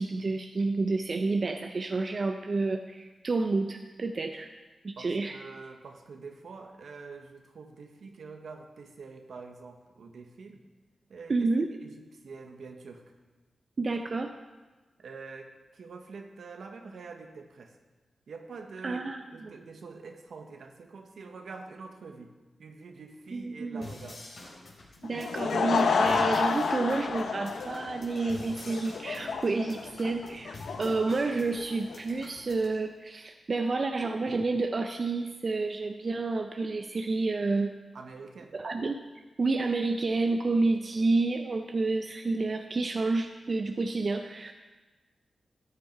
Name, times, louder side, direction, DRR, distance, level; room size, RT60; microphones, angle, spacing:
voice 1, 0.0-4.5 4.8-5.4 11.3-11.7 13.8-14.3 18.8-19.5 23.3-23.9 25.0-37.7 38.5-39.0 39.4-44.5, right 3 dB, 50° right, 5 dB, 0.6 m, -29 dB
voice 2, 5.0-10.6 11.1-11.5 11.8-13.1 15.0-17.8 18.3-24.2 37.9-38.5, right 4 dB, 80° right, 4 dB, 1.2 m, -46 dB
sound 1, 23.8-32.8, left 2 dB, 70° left, 3.1 m, -48 dB
Laughter / Crowd, 25.0-32.0, left 5 dB, 85° left, 0.8 m, -30 dB
14.0 x 8.3 x 4.6 m, 1.2 s
cardioid pair, 70°, 0 cm